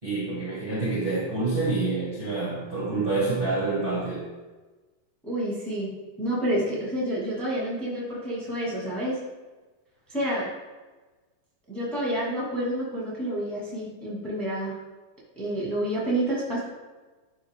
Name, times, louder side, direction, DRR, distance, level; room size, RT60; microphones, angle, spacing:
voice 1, 0.0-4.2, right 3 dB, 25° right, -8 dB, 1.1 m, -27 dB
voice 2, 5.2-5.9 6.2-9.1 10.1-10.5 11.7-14.8 15.3-16.6, right 1 dB, ahead, -5 dB, 1.4 m, -29 dB
11.0 x 3.6 x 3.7 m, 1.2 s
omnidirectional pair, 4.0 m